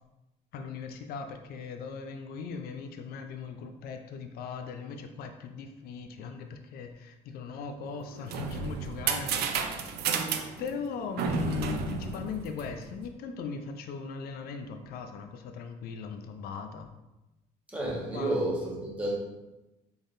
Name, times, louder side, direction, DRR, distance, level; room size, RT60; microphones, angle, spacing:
voice 1, 0.5-9.9 10.6-16.9 18.1-18.3, left 5 dB, 65° left, 6 dB, 0.4 m, -39 dB
sound 1, 8.0-13.0, right 6 dB, 70° right, 0.4 m, -32 dB
voice 2, 17.7-19.1, right 1 dB, 10° right, -4 dB, 1.1 m, -30 dB
3.9 x 3.4 x 2.6 m, 1.0 s
cardioid pair, 110°, 17 cm